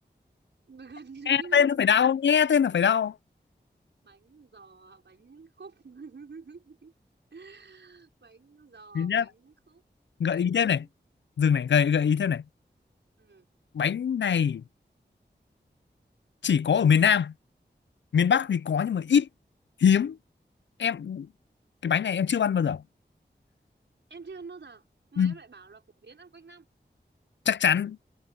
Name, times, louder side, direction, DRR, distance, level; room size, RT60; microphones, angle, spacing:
voice 1, 0.7-2.1 4.0-6.9 7.3-9.8 10.3-10.9 13.2-13.5 24.1-24.8 25.1-26.7, right 4 dB, 85° right, 5.4 m, -48 dB
voice 2, 1.3-3.1 8.9-9.3 10.2-10.9 11.4-12.4 13.7-14.6 16.4-17.3 18.1-19.3 19.8-20.2 20.8-21.3 21.8-22.8 25.2-25.3 27.5-28.0, left 7 dB, 85° left, 0.5 m, -23 dB
cardioid pair, 45°, 18 cm